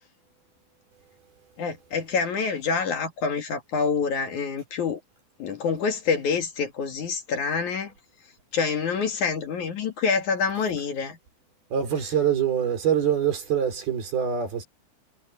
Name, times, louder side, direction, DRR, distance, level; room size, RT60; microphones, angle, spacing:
voice 1, 1.6-5.0 5.4-7.9 8.5-11.2, left 5 dB, 55° left, 3.1 m, -26 dB
voice 2, 11.7-14.6, right 8 dB, 75° right, 7.0 m, -24 dB
omnidirectional pair, 4.4 m